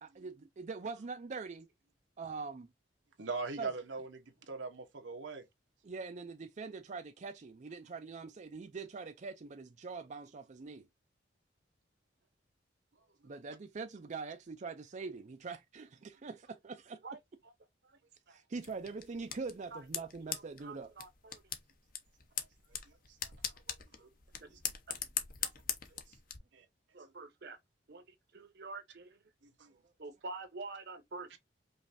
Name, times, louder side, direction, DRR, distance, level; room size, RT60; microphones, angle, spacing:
voice 1, 0.0-1.7 2.2-2.7 3.6-3.7 5.8-10.9 13.2-17.2 18.3-20.9 29.8-29.9, right 4 dB, 40° right, 0.4 m, -43 dB
voice 2, 3.2-5.4 24.0-24.1 26.5-26.6 29.6-29.7, right 4 dB, 90° right, 1.1 m, -40 dB
sound 1, 18.6-26.4, left 9 dB, 50° left, 0.9 m, -42 dB
voice 3, 26.9-27.6 27.9-28.0 28.3-29.0 30.0-31.4, right 3 dB, 60° right, 1.0 m, -45 dB
5.2 x 3.2 x 2.6 m
head